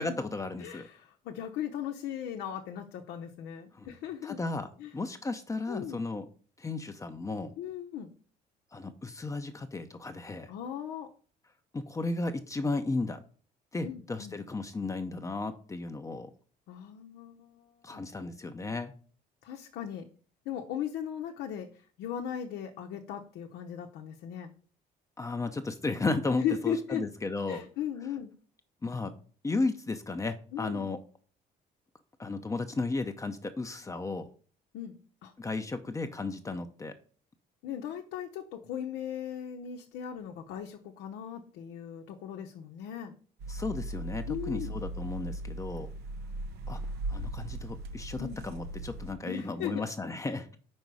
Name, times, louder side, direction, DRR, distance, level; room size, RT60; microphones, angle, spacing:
voice 1, 0.0-0.9 3.7-3.9 4.2-6.3 6.6-7.5 8.7-10.5 11.7-13.2 13.7-16.3 17.8-18.9 25.2-27.6 28.8-29.1 29.4-31.0 32.2-34.3 35.4-37.0 43.5-45.9 46.7-46.8 47.1-50.5, left 3 dB, 20° left, 8 dB, 0.7 m, -34 dB
voice 2, 0.6-4.4 4.8-4.9 5.7-6.0 7.6-8.1 10.5-11.1 13.8-14.4 16.7-18.0 19.4-20.1 20.4-24.5 26.4-27.1 27.5-28.3 30.5-30.9 34.7-35.3 37.6-43.1 44.3-44.8 48.2-48.4 49.2-49.8, left 9 dB, 90° left, 2 dB, 0.9 m, -38 dB
sound 1, 43.4-49.1, right 1 dB, 70° right, 0.9 m, -38 dB
5.3 x 4.6 x 6.1 m, 0.42 s
cardioid pair, 110°, 17 cm